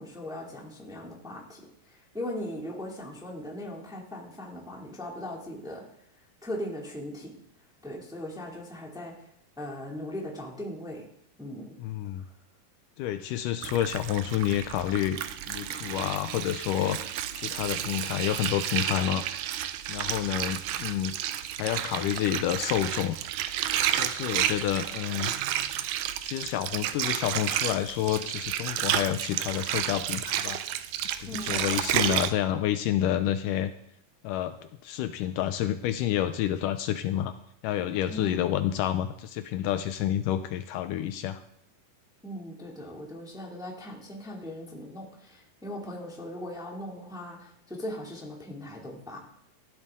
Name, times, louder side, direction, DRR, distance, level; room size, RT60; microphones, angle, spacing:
voice 1, 0.0-5.8 6.4-7.3 7.8-9.1 9.6-11.0 11.4-11.7 12.2-12.3 31.3-31.7 38.1-38.4 42.2-49.2, left 1 dB, ahead, -1 dB, 1.6 m, -39 dB
voice 2, 11.8-12.2 13.0-15.2 15.5-19.2 19.9-21.2 21.6-23.2 24.0-25.3 26.2-30.6 31.2-33.7 34.2-34.6 34.8-37.4 37.6-41.4, left 11 dB, 80° left, 10 dB, 2.1 m, -29 dB
Water, 13.6-32.3, right 11 dB, 80° right, 2.1 m, -31 dB
14.0 x 12.0 x 3.7 m, 0.75 s
omnidirectional pair, 3.9 m